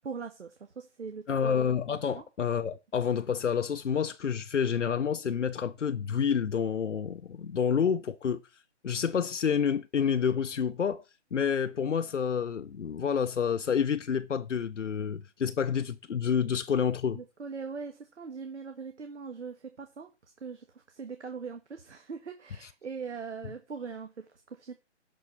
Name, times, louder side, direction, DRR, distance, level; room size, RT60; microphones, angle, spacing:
voice 1, 0.0-1.5 2.1-2.2 17.1-20.1 20.4-24.7, right 5 dB, 75° right, 1.5 m, -41 dB
voice 2, 1.3-8.4 8.8-11.0 11.3-17.2 22.6-22.7, left 7 dB, 85° left, 0.8 m, -29 dB
11.5 x 4.5 x 5.8 m
hypercardioid pair, 155°, 35 cm